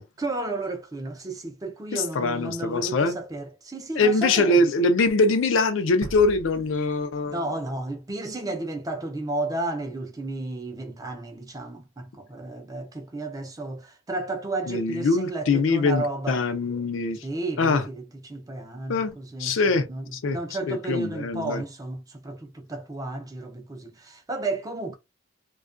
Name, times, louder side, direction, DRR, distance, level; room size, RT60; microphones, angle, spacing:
voice 1, 0.2-4.6 7.3-16.4 17.2-25.0, right 2 dB, 20° right, 0.5 m, -33 dB
voice 2, 1.9-3.2 4.0-7.4 14.7-17.2 17.6-17.9 18.9-20.4 20.7-21.6, left 3 dB, 70° left, 0.4 m, -23 dB
sound 1, 6.0-7.9, right 1 dB, 85° right, 0.5 m, -42 dB
2.3 x 2.2 x 2.4 m
head